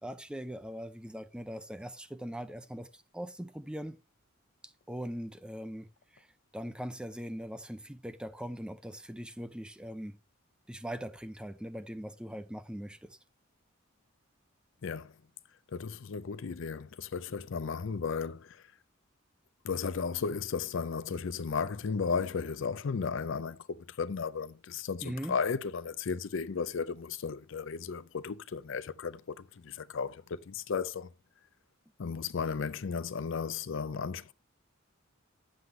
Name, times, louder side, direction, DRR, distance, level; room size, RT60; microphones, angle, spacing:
voice 1, 0.0-4.0 4.6-6.3 6.5-10.2 10.7-13.2 25.0-25.4, equal, 5° right, 0.5 m, -41 dB
voice 2, 14.8-15.1 15.7-18.6 19.6-31.1 32.0-34.3, left 5 dB, 65° left, 0.5 m, -35 dB
9.4 x 7.7 x 3.2 m
head